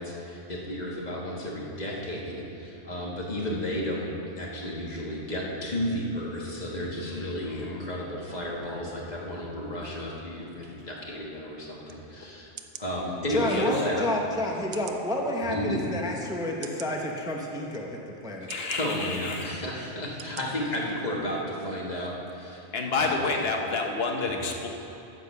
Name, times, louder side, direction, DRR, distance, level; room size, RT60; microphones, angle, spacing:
voice 1, 0.0-12.5 12.8-14.0 15.4-15.8 18.4-22.6 23.0-23.2 24.2-24.3, left 1 dB, 40° left, -3 dB, 1.6 m, -33 dB
voice 2, 7.0-7.8 13.5-13.8 18.5-19.5 22.7-24.7, left 3 dB, 65° left, 2 dB, 1.2 m, -30 dB
sound 1, 11.9-12.0 12.6-12.9 13.6-13.7 14.7-15.0 15.7-15.8 16.6-16.9 17.7-17.8 18.5-18.8 19.5-19.7 20.2-20.4 20.9-21.0, right 9 dB, 65° right, 0.8 m, -43 dB
voice 3, 13.3-18.5, left 1 dB, 5° right, 0 dB, 0.6 m, -30 dB
9.8 x 6.5 x 6.9 m, 2.9 s
omnidirectional pair, 1.1 m